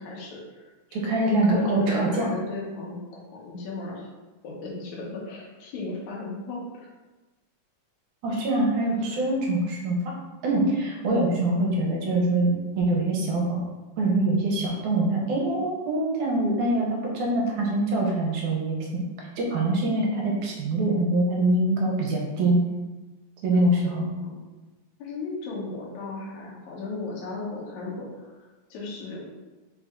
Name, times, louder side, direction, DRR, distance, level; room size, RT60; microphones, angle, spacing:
voice 1, 0.0-1.0 1.5-4.1 4.4-6.9 9.0-9.2 23.5-24.4 25.0-29.2, left 3 dB, 70° left, -4 dB, 2.2 m, -36 dB
voice 2, 0.9-2.3 8.2-10.1 10.4-13.6 14.0-19.0 19.4-22.6 23.4-24.0, right 2 dB, 75° right, -2 dB, 2.2 m, -24 dB
5.5 x 2.6 x 3.5 m, 1.2 s
omnidirectional pair, 3.7 m